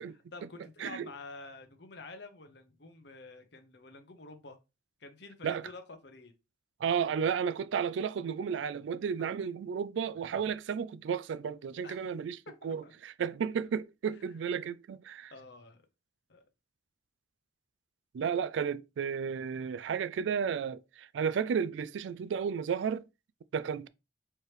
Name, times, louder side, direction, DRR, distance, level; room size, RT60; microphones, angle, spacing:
voice 1, 0.0-4.6 5.0-6.3 11.8-12.1 12.6-12.9 14.1-14.3 15.3-15.8 16.3-16.4, left 3 dB, 65° left, 0.9 m, -49 dB
voice 2, 6.8-12.4 12.6-15.3 18.1-23.0 23.5-23.9, right 7 dB, 80° right, 0.3 m, -33 dB
4.5 x 3.1 x 3.2 m
head